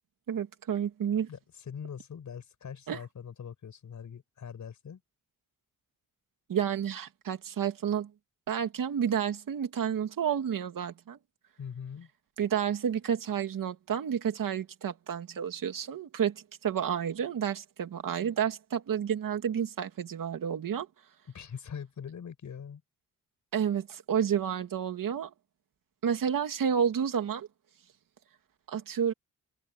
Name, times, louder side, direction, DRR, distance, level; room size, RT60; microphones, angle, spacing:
voice 1, 0.3-1.3 2.9-3.0 6.5-8.1 8.5-11.2 12.4-20.9 23.5-25.3 26.0-27.5 28.7-29.1, right 8 dB, 75° right, 2.6 m, -30 dB
voice 2, 1.3-5.0 11.6-12.1 21.3-22.8, left 7 dB, 60° left, 6.7 m, -42 dB
wide cardioid pair, 145°, 33 cm